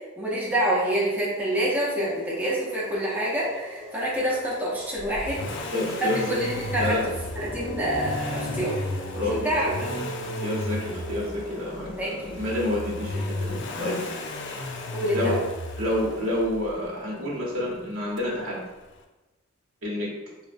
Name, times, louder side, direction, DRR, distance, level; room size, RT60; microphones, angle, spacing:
voice 1, 0.2-5.4 6.0-6.9 7.4-8.8 9.3-9.7 12.0-12.4 14.9-15.4, right 1 dB, 10° right, -7 dB, 0.6 m, -27 dB
sound 1, 1.1-15.3, left 1 dB, 25° left, 0.7 m, -43 dB
Accelerating revving vroom, 4.9-16.9 18.2-18.3, left 2 dB, 60° left, 0.3 m, -35 dB
voice 2, 5.4-6.4 6.8-7.0 9.1-9.4 10.2-14.0 15.1-15.4 15.8-18.6 19.8-20.1, left 1 dB, 85° right, -5 dB, 0.8 m, -29 dB
sound 2, 6.2-11.1, right 1 dB, 55° right, 0.8 m, -36 dB
2.8 x 2.1 x 2.5 m, 1.1 s
head